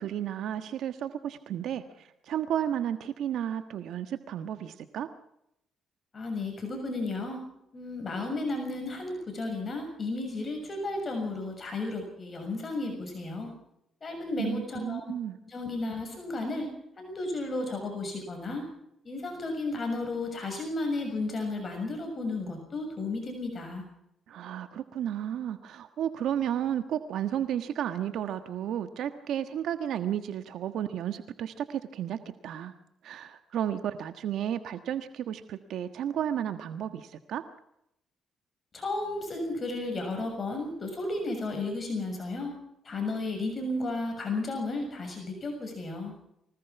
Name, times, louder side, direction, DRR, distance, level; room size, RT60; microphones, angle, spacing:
voice 1, 0.0-5.1 14.4-15.4 24.3-32.7 33.0-37.5, right 10 dB, 75° right, 9 dB, 1.4 m, -33 dB
voice 2, 6.1-7.4 7.7-13.5 14.0-15.0 15.5-16.7 17.0-18.6 19.0-23.8 38.7-42.5 42.8-46.1, left 2 dB, 35° left, 3 dB, 6.7 m, -33 dB
25.0 x 18.0 x 6.0 m, 0.77 s
cardioid pair, 90°, 0 cm